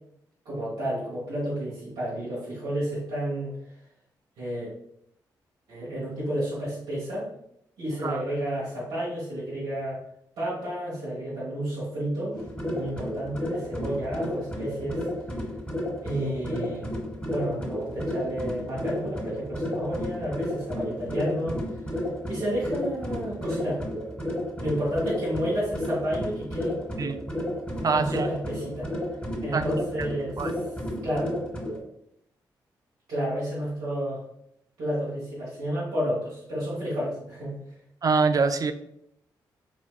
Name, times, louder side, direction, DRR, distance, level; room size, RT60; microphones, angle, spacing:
voice 1, 0.4-3.6 4.4-4.7 5.7-7.3 7.8-10.0 10.4-12.4 12.7-15.0 16.0-16.9 17.2-21.6 22.3-23.8 24.6-26.7 27.7-28.9 29.4-30.4 31.0-31.3 33.1-34.2 34.8-37.5, equal, 80° right, -9 dB, 1.2 m, -31 dB
sound 1, 12.3-31.8, equal, 15° left, 1.2 m, -32 dB
voice 2, 27.8-28.3 29.5-29.7 30.0-30.1 30.4-30.5 38.0-38.7, right 4 dB, 40° right, 9 dB, 0.3 m, -24 dB
4.1 x 2.3 x 2.3 m, 0.75 s
hypercardioid pair, 40°, 9 cm